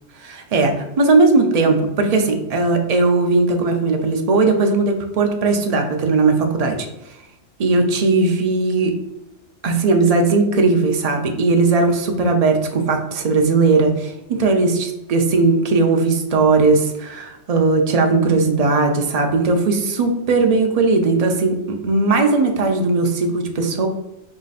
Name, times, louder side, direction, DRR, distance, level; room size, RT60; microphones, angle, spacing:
voice 1, 0.2-6.9 7.6-8.9 9.6-21.6 21.8-23.9, right 3 dB, 55° right, 4 dB, 0.4 m, -18 dB
4.8 x 2.5 x 4.0 m, 0.89 s
omnidirectional pair, 1.3 m